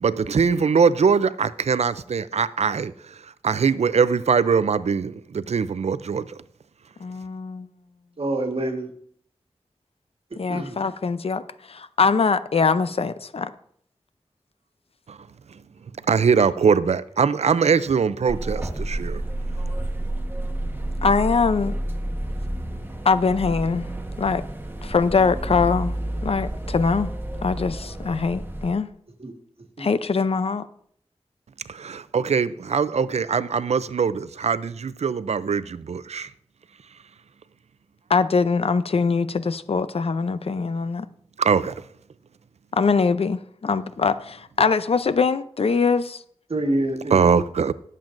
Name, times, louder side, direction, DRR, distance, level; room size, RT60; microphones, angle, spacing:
voice 1, 0.0-2.9 3.4-6.3 15.1-15.2 16.1-19.2 31.7-36.3 41.4-41.7 47.1-47.7, right 6 dB, 80° right, 0.5 m, -22 dB
voice 2, 7.0-7.7 10.4-11.4 11.7-13.5 21.0-21.8 23.0-23.9 24.2-24.4 24.8-26.0 26.2-27.1 27.4-28.9 29.8-30.7 38.1-41.1 42.7-46.2, left 5 dB, 65° left, 0.6 m, -22 dB
voice 3, 8.2-8.9 10.5-10.8 29.2-29.3 29.8-29.9 46.5-47.4, right 1 dB, 60° right, 1.6 m, -27 dB
sound 1, 18.3-28.7, right 1 dB, 20° right, 1.2 m, -30 dB
19.5 x 7.6 x 2.6 m
wide cardioid pair, 65°, 11 cm